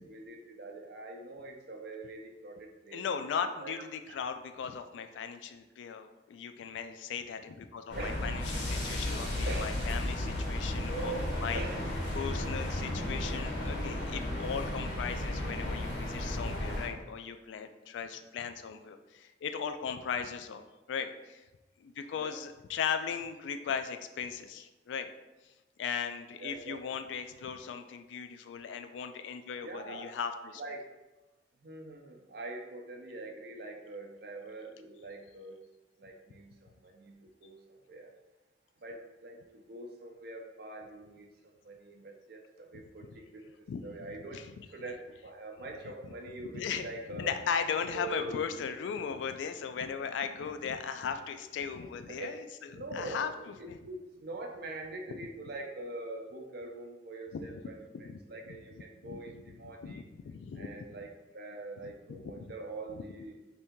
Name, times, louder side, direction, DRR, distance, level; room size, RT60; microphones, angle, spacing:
voice 1, 0.1-3.0 3.6-4.2 8.0-8.3 9.5-9.8 11.5-11.9 16.5-16.6 22.2-22.3 26.4-26.8 29.6-30.2 30.6-30.9 31.6-35.6 36.0-36.5 36.8-37.6 37.9-38.1 38.8-47.3 47.9-48.4 52.1-52.4 52.7-60.0 60.6-63.4, right 2 dB, 60° right, 2 dB, 0.5 m, -44 dB
voice 2, 2.9-11.6 12.1-21.4 21.8-25.1 25.8-30.6 42.7-42.8 43.1-43.2 43.7-44.5 46.5-46.8 47.1-53.8 57.3-57.5 58.0-58.2 58.5-58.6 59.0-59.4 59.8-60.8 61.8-62.5 62.9-63.0, left 6 dB, 90° left, 8 dB, 0.3 m, -37 dB
sound 1, 7.9-16.9, left 1 dB, 65° left, 0.7 m, -34 dB
2.7 x 2.7 x 3.5 m, 1.1 s
head